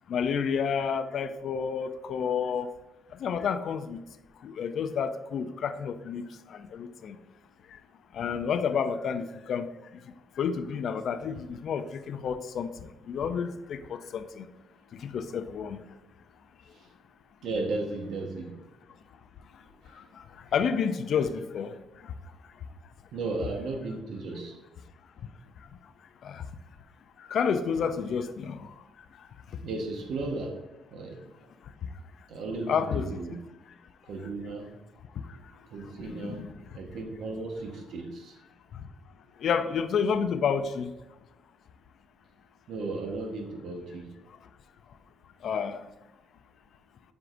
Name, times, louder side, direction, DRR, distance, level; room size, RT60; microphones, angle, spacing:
voice 1, 0.1-2.7 3.2-4.0 4.4-6.2 6.5-7.2 8.1-9.7 10.4-12.7 13.1-14.4 15.0-15.8 20.5-21.7 26.2-26.4 27.3-28.7 32.7-33.4 36.1-36.5 39.4-40.9 45.4-45.8, left 6 dB, 65° left, 10 dB, 0.5 m, -30 dB
voice 2, 17.4-18.5 19.8-20.0 23.1-24.6 29.6-30.6 30.9-31.2 32.3-33.4 34.1-34.7 35.7-36.5 36.7-38.4 42.7-44.1, right 3 dB, 75° right, 2 dB, 1.3 m, -35 dB
7.7 x 4.7 x 2.6 m, 1.0 s
cardioid pair, 90°, 0 cm